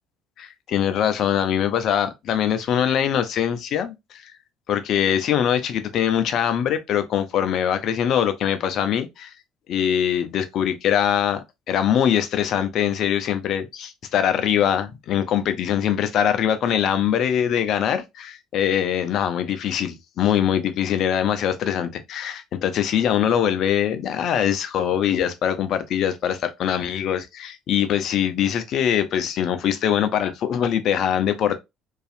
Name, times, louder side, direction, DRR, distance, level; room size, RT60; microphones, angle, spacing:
voice 1, 0.4-4.3 4.7-9.3 9.7-31.6, left 9 dB, 55° left, 0.4 m, -23 dB
2.6 x 2.3 x 2.4 m
hypercardioid pair, 55°, 0 cm